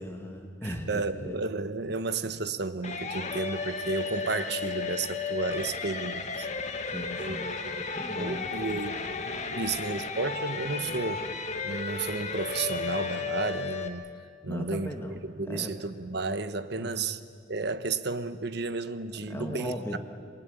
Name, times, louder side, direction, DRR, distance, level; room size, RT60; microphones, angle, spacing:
voice 1, 0.0-1.4 6.9-7.5 7.9-8.5 14.5-15.7 16.8-17.1 19.3-20.0, left 1 dB, 15° left, 2 dB, 2.1 m, -38 dB
voice 2, 0.6-6.5 7.2-7.9 8.1-11.2 11.6-14.1 14.4-14.9 15.2-17.2 17.5-20.0, right 3 dB, 60° right, 11 dB, 1.1 m, -32 dB
sound 1, 2.8-13.9, left 4 dB, 40° left, 1.8 m, -34 dB
28.0 x 22.5 x 9.2 m, 2.1 s
head